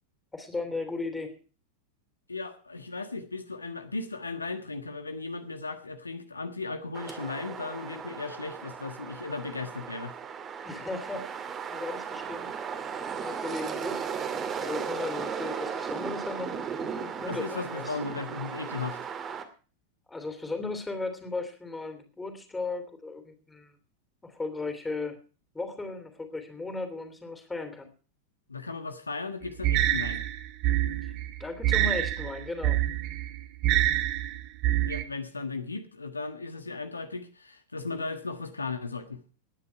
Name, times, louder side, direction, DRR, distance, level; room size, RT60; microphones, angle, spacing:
voice 1, 0.3-1.3 10.6-12.5 13.1-14.2 14.5-18.1 20.1-23.8 24.2-25.2 25.5-27.9 31.0-31.1 31.4-32.8, left 3 dB, 10° left, 3.0 m, -36 dB
voice 2, 2.3-10.1 17.3-19.0 28.5-30.2 34.8-39.2, left 3 dB, 80° left, 1.4 m, -36 dB
sound 1, 6.9-19.4, right 7 dB, 25° right, 2.2 m, -36 dB
sound 2, 29.6-35.0, right 13 dB, 40° right, 1.6 m, -26 dB
19.5 x 9.8 x 4.5 m
figure-of-eight pair, 90°, 0 cm